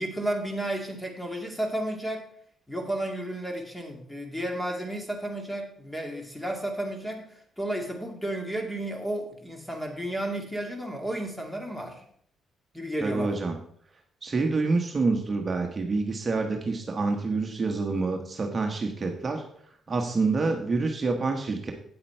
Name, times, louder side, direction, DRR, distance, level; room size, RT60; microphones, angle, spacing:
voice 1, 0.0-2.3 2.7-7.2 7.6-12.0 12.7-13.4, right 1 dB, 5° left, 3 dB, 2.2 m, -32 dB
voice 2, 13.0-13.6 14.2-19.4 19.9-21.7, right 3 dB, 35° right, 3 dB, 1.2 m, -27 dB
8.9 x 7.8 x 4.5 m, 0.66 s
cardioid pair, 90°, 0 cm